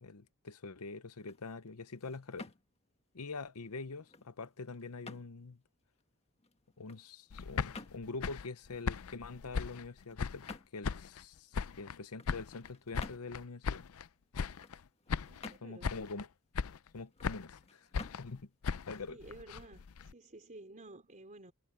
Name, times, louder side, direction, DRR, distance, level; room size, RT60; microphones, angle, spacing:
voice 1, 0.0-2.5 3.1-5.6 6.8-13.8 15.6-16.3 16.9-17.9 18.2-18.5 18.9-19.2, left 3 dB, 85° left, 0.9 m, -45 dB
sound 1, 1.0-19.9, left 3 dB, 30° left, 1.5 m, -55 dB
sound 2, 7.3-10.6 10.8-12.0 12.3-14.1 14.3-14.8 15.1-15.6 15.8-16.3 16.5-17.6 17.9-20.1, left 5 dB, 70° left, 0.5 m, -38 dB
voice 2, 15.3-15.9 19.1-21.5, right 2 dB, 35° right, 3.6 m, -53 dB
head